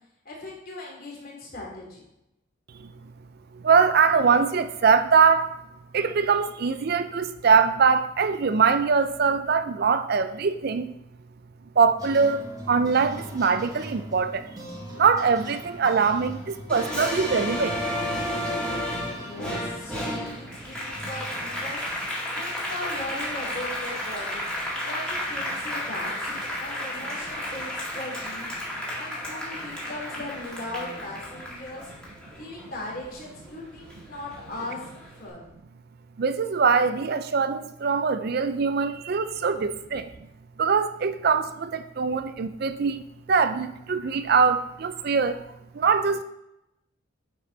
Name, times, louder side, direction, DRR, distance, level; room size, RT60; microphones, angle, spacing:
voice 1, 0.2-2.0 19.0-21.9 22.3-24.5 24.8-28.5 28.9-32.0 32.3-35.4, left 2 dB, 45° left, -3 dB, 2.7 m, -38 dB
voice 2, 3.6-5.6 5.9-10.9 11.8-12.4 12.7-14.5 15.0-17.8 36.2-40.1 40.6-43.0 43.3-45.4 45.7-46.2, right 5 dB, 50° right, 11 dB, 0.4 m, -22 dB
sound 1, 12.0-21.7, equal, 20° right, 1.2 m, -41 dB
Applause, 16.7-33.5 33.9-35.1, left 1 dB, 5° left, 1.8 m, -32 dB
9.4 x 5.5 x 3.9 m, 0.86 s
head